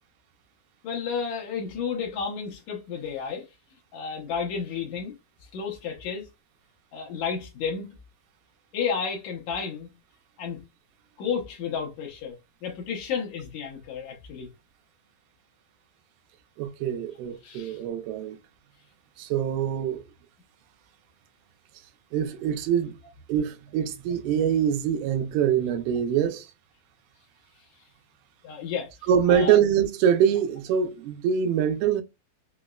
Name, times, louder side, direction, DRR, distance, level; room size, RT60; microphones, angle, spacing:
voice 1, 0.8-3.4 3.9-5.1 5.5-6.3 6.9-7.9 8.7-9.9 10.4-10.6 11.2-12.4 12.6-14.5 17.4-17.8 28.4-29.6, left 6 dB, 75° left, 1.7 m, -32 dB
voice 2, 16.6-18.4 19.2-20.0 22.1-23.0 23.3-26.5 29.1-32.0, right 8 dB, 85° right, 2.5 m, -24 dB
5.7 x 2.0 x 2.3 m
omnidirectional pair, 4.3 m